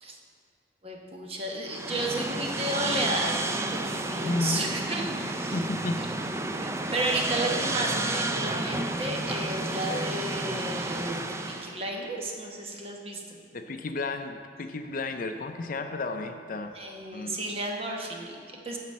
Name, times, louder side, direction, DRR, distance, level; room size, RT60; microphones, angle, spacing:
voice 1, 0.8-5.6 6.6-13.4 16.7-18.8, right 1 dB, 35° right, 1 dB, 1.0 m, -33 dB
sound 1, 1.7-11.8, right 2 dB, 15° right, 0.3 m, -31 dB
voice 2, 4.2-4.7 5.5-6.4 13.5-16.7 17.1-17.4, left 2 dB, 50° left, 6 dB, 0.5 m, -32 dB
9.6 x 4.1 x 7.3 m, 2.4 s
head